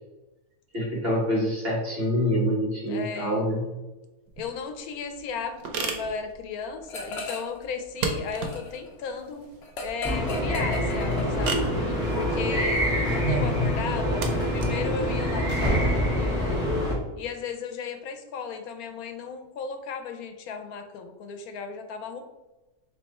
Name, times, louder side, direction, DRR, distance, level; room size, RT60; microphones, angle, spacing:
voice 1, 0.7-3.7 13.2-13.7, equal, 45° right, -5 dB, 1.6 m, -26 dB
voice 2, 2.9-3.5 4.4-9.5 9.8-11.6 12.1-14.2 14.5-16.6 17.2-22.2, left 5 dB, 85° left, 7 dB, 1.1 m, -35 dB
sound 1, 4.3-16.7, right 4 dB, 85° right, 1.2 m, -37 dB
sound 2, 6.9-7.6 7.9-11.8, left 2 dB, 55° left, 0.9 m, -37 dB
sound 3, 10.0-16.9, equal, 5° right, 1.3 m, -26 dB
3.4 x 3.3 x 4.0 m, 1.1 s
omnidirectional pair, 1.5 m